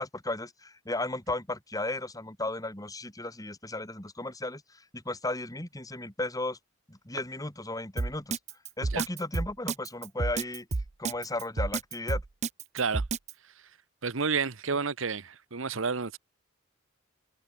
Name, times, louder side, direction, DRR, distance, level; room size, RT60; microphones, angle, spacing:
voice 1, 0.0-6.6 6.9-8.4 8.8-10.7 11.0-12.2, left 2 dB, 20° left, 4.1 m, -35 dB
Drum kit, 8.0-13.3, right 3 dB, 35° right, 0.5 m, -30 dB
voice 2, 14.0-16.2, right 5 dB, 75° right, 1.1 m, -30 dB
head